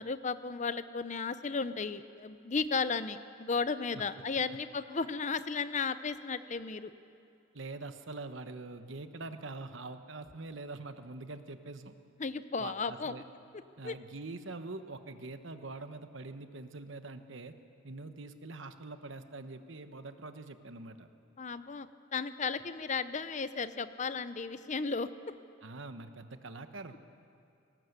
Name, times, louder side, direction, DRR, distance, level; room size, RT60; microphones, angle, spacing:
voice 1, 0.0-6.9 12.2-13.1 13.8-13.9 21.4-21.9 22.1-25.1, left 4 dB, 40° left, 13 dB, 0.7 m, -34 dB
voice 2, 7.5-11.9 12.6-13.2 13.8-17.6 17.8-21.1 25.6-27.0, right 3 dB, 70° right, 9 dB, 1.2 m, -44 dB
19.0 x 18.5 x 8.2 m, 2.5 s
head